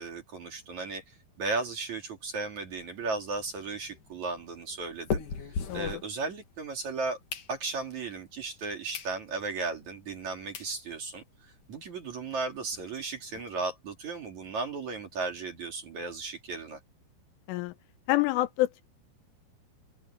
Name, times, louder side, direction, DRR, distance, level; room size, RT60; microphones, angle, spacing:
voice 1, 0.0-5.2 5.7-7.2 7.5-16.8, right 3 dB, 45° right, 3.2 m, -35 dB
sound 1, 2.7-6.7 7.0-8.0 8.5-8.6 8.9-9.2 9.6-9.7 10.2-10.3 10.5-10.7 11.2-11.3 11.4-11.6 11.9-12.0 12.3-13.4, left 6 dB, 50° left, 3.2 m, -39 dB
voice 2, 18.1-18.8, left 17 dB, 80° left, 3.1 m, -27 dB
open air
omnidirectional pair, 5.9 m